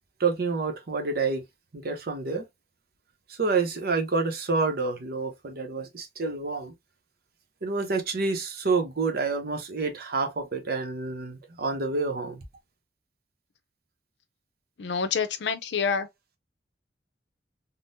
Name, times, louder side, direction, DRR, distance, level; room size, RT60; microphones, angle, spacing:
voice 1, 0.2-1.5 1.7-2.5 3.4-6.7 7.6-12.4, right 4 dB, 55° right, 0.8 m, -28 dB
voice 2, 14.8-16.1, left 6 dB, 70° left, 0.5 m, -27 dB
3.6 x 2.1 x 2.6 m
head